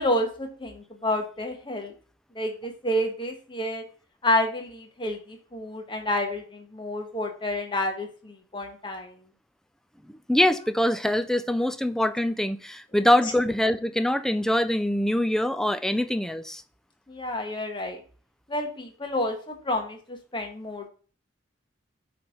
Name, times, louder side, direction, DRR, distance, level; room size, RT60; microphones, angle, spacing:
voice 1, 0.0-1.9 2.3-3.9 4.2-9.2 17.1-18.0 18.5-20.9, left 1 dB, 25° left, 1.3 m, -29 dB
voice 2, 10.3-16.6, left 1 dB, 5° left, 0.4 m, -24 dB
8.5 x 3.4 x 5.8 m
head